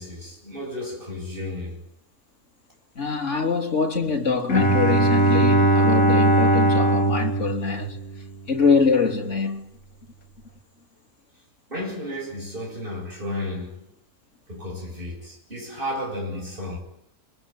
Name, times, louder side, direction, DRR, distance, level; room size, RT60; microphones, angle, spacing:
voice 1, 0.0-1.8 11.7-13.9 14.5-16.8, left 1 dB, 35° right, 8.4 m, -33 dB
voice 2, 2.9-8.0 8.5-9.7, left 4 dB, 50° left, 3.4 m, -24 dB
Bowed string instrument, 4.5-8.4, right 1 dB, 65° left, 2.7 m, -19 dB
25.5 x 22.5 x 9.8 m
omnidirectional pair, 1.6 m